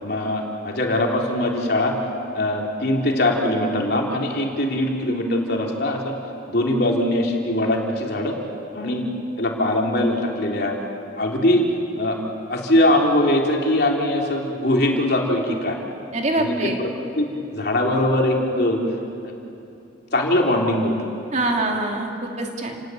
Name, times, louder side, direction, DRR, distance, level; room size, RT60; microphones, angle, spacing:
voice 1, 0.0-2.0 2.3-6.2 6.5-8.4 8.7-9.1 9.4-10.8 11.2-11.6 12.0-12.2 12.5-15.8 16.3-16.9 17.2-18.8 19.2-19.3 20.1-21.1, left 1 dB, 55° left, 0 dB, 3.6 m, -21 dB
voice 2, 16.1-16.8 21.3-22.8, right 2 dB, 40° right, 1 dB, 2.8 m, -24 dB
30.0 x 18.5 x 9.2 m, 2.7 s
head